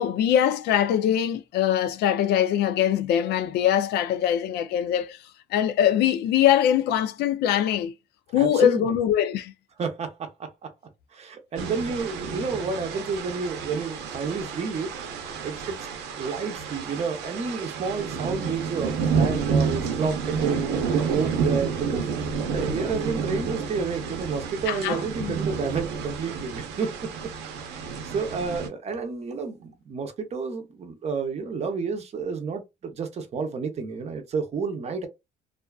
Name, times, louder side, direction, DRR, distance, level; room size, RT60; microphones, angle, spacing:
voice 1, 0.0-7.9 8.3-9.5 24.7-25.3, left 10 dB, 75° left, 0.4 m, -23 dB
voice 2, 8.3-8.8 9.8-10.7 11.1-14.9 15.4-15.9 16.1-27.1 27.6-35.1, right 5 dB, 40° right, 0.7 m, -30 dB
sound 1, 11.6-28.7, right 5 dB, 85° right, 0.7 m, -30 dB
2.5 x 2.2 x 2.3 m
cardioid pair, 110°, 17 cm